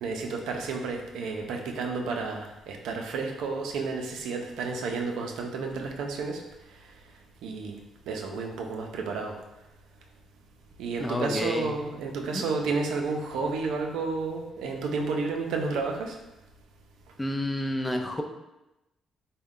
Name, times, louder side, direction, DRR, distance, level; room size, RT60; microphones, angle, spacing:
voice 1, 0.0-6.4 7.4-7.8 8.1-9.3 10.8-16.2, right 4 dB, 85° right, 2 dB, 0.4 m, -31 dB
voice 2, 11.0-11.7 12.3-12.4 17.2-18.2, left 1 dB, 15° left, 4 dB, 0.4 m, -29 dB
3.5 x 2.1 x 3.6 m, 0.95 s
cardioid pair, 80°, 0 cm